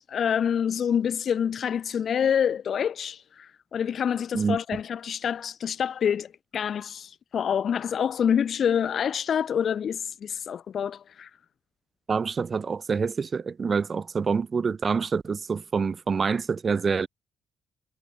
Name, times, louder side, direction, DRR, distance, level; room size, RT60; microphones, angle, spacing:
voice 1, 0.0-11.3, left 8 dB, 60° left, 0.9 m, -27 dB
voice 2, 12.1-17.1, right 5 dB, 40° right, 5.9 m, -26 dB
cardioid pair, 80°, 0 cm